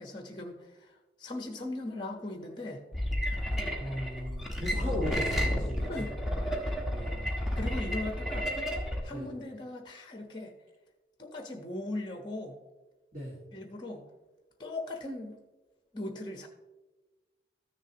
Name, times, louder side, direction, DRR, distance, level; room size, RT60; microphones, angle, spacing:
voice 1, 0.0-2.8 5.9-6.2 7.5-8.5 9.0-10.5 11.2-12.6 13.5-14.0 14.6-15.4 15.9-16.5, left 2 dB, 25° left, 4 dB, 1.1 m, -39 dB
sound 1, 2.9-9.0, equal, ahead, 1.2 m, -31 dB
voice 2, 3.5-6.1 6.9-7.5 9.1-9.3 13.1-13.3, equal, 45° right, -4 dB, 1.9 m, -38 dB
14.0 x 6.7 x 2.9 m, 1.1 s
head